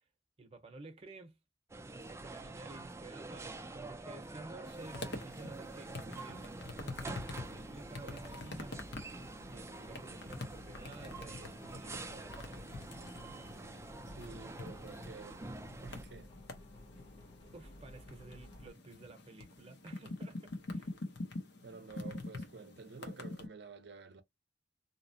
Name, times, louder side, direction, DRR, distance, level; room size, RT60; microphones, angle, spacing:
voice 1, 0.4-1.4 1.9-8.7 9.5-12.9 13.7-13.8 17.5-20.9, right 3 dB, 35° right, 0.8 m, -53 dB
sound 1, 1.7-16.0, right 2 dB, 15° right, 0.4 m, -47 dB
sound 2, 4.7-23.5, left 2 dB, 70° left, 0.8 m, -47 dB
sound 3, 6.7-18.7, left 1 dB, 30° left, 0.8 m, -55 dB
voice 2, 14.1-15.4 15.8-16.3 21.6-24.2, right 4 dB, 65° right, 0.6 m, -50 dB
2.8 x 2.0 x 2.6 m
head